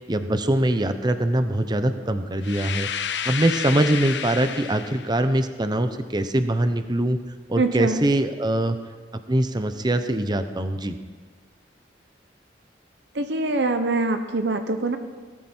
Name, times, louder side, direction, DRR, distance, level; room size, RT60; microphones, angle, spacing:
voice 1, 0.1-2.9 3.3-7.2 7.5-8.8 9.3-11.0, right 1 dB, 25° right, 9 dB, 0.8 m, -23 dB
sound 1, 2.4-5.2, left 8 dB, 70° left, 0.7 m, -30 dB
voice 2, 7.5-8.0 13.1-15.0, right 2 dB, 70° right, 7 dB, 0.9 m, -24 dB
18.0 x 13.0 x 4.5 m, 1.5 s
head